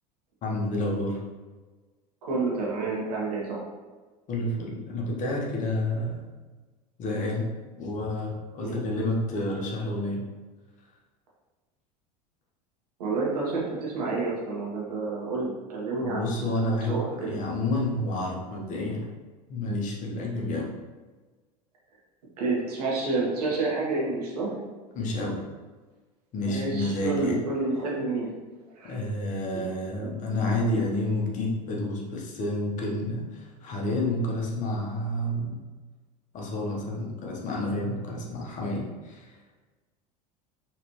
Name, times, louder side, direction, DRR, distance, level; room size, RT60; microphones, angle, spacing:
voice 1, 0.4-1.2 4.3-6.2 7.0-7.5 7.8-10.2 16.0-19.1 19.5-20.7 24.9-25.4 26.3-27.4 28.8-35.6 36.3-39.4, left 1 dB, 35° left, -2 dB, 1.0 m, -29 dB
voice 2, 2.2-3.6 8.6-8.7 13.0-16.3 16.8-17.3 22.4-24.5 26.4-28.3 28.7-29.0, right 3 dB, 65° right, -4 dB, 1.2 m, -29 dB
4.3 x 3.2 x 2.9 m, 1.3 s
figure-of-eight pair, 75°, 21 cm